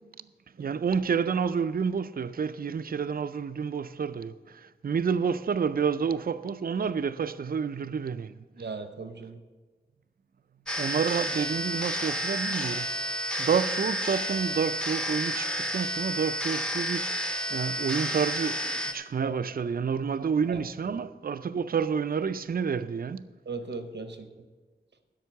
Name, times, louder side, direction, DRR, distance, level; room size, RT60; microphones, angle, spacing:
voice 1, 0.6-8.4 10.8-17.1 17.5-23.3, right 6 dB, 60° right, 0.4 m, -29 dB
voice 2, 8.6-9.4 19.2-19.3 20.5-21.0 23.5-24.3, right 4 dB, 85° right, 0.9 m, -37 dB
sound 1, 10.7-18.9, equal, 5° left, 0.7 m, -31 dB
12.5 x 5.5 x 7.0 m
wide cardioid pair, 75°, 17 cm